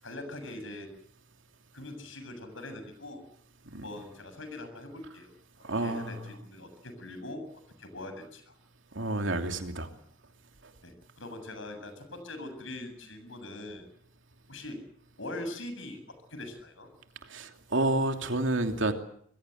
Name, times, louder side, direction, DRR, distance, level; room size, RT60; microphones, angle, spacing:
voice 1, 0.0-0.9 1.7-3.3 3.7-5.3 5.8-7.4 7.8-8.6 10.8-13.9 14.5-14.8 15.2-16.0 16.3-16.9, left 1 dB, 70° left, 7.2 m, -42 dB
voice 2, 5.6-6.2 8.9-9.9 10.6-10.7 17.3-18.9, right 2 dB, 65° right, 2.8 m, -29 dB
26.0 x 21.5 x 7.9 m
head